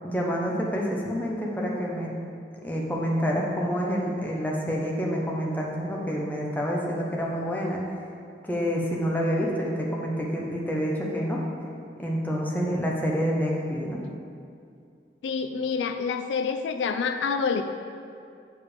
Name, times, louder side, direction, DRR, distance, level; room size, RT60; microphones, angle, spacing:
voice 1, 0.0-2.1 2.6-7.8 8.4-11.4 12.0-14.0, equal, 10° left, -3 dB, 0.8 m, -28 dB
voice 2, 15.2-17.6, left 5 dB, 85° left, 8 dB, 0.3 m, -27 dB
6.7 x 4.9 x 5.0 m, 2.4 s
head